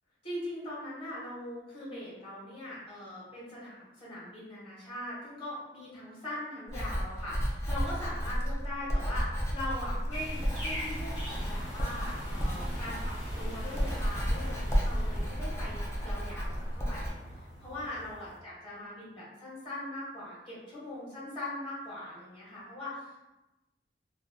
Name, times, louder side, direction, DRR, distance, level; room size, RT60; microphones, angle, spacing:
voice 1, 0.2-17.1 17.6-23.3, left 1 dB, 30° left, -9 dB, 1.2 m, -41 dB
Writing, 6.7-17.1, equal, 15° left, 0.4 m, -32 dB
sound 1, 10.1-18.3, equal, 85° left, 1.3 m, -40 dB
2.7 x 2.1 x 2.6 m, 0.99 s
head